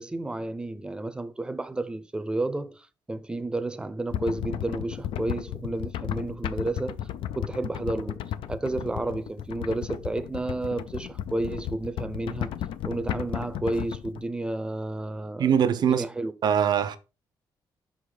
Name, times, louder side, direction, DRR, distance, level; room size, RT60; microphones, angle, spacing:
voice 1, 0.0-7.0 7.3-8.2 8.5-12.6 12.8-15.5 15.9-16.3, right 2 dB, 10° right, 0.6 m, -31 dB
sound 1, 4.1-14.2, left 11 dB, 90° left, 0.5 m, -34 dB
voice 2, 15.4-16.1 16.4-17.0, right 8 dB, 55° right, 0.7 m, -22 dB
5.6 x 4.9 x 3.9 m
cardioid pair, 125°, 8 cm